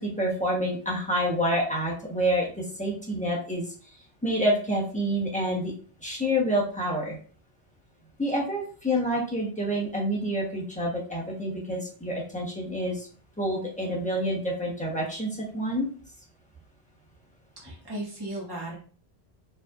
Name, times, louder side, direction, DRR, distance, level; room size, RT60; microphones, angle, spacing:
voice 1, 0.0-3.7 4.2-5.7 6.0-7.2 8.2-13.1 13.4-15.9, equal, 5° left, -4 dB, 1.3 m, -28 dB
voice 2, 17.6-18.7, right 1 dB, 25° right, -4 dB, 1.4 m, -36 dB
4.7 x 3.4 x 2.6 m, 0.41 s
omnidirectional pair, 1.0 m